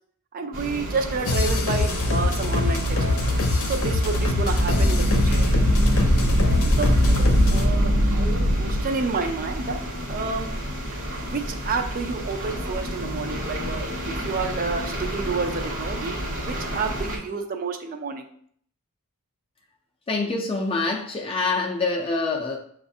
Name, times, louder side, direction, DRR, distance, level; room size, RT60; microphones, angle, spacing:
voice 1, 0.3-3.3 3.7-5.5 6.7-9.8 10.1-10.5 11.2-16.2 16.5-18.3, right 4 dB, 40° right, 5 dB, 0.4 m, -30 dB
sound 1, 0.5-17.2, equal, 60° right, 1.0 m, -32 dB
sound 2, 1.2-7.7, left 2 dB, 70° left, 0.6 m, -23 dB
sound 3, 4.0-8.9, equal, 85° right, 0.7 m, -21 dB
voice 2, 20.1-22.6, left 3 dB, 25° left, 0 dB, 0.4 m, -25 dB
6.9 x 2.4 x 2.7 m, 0.63 s
head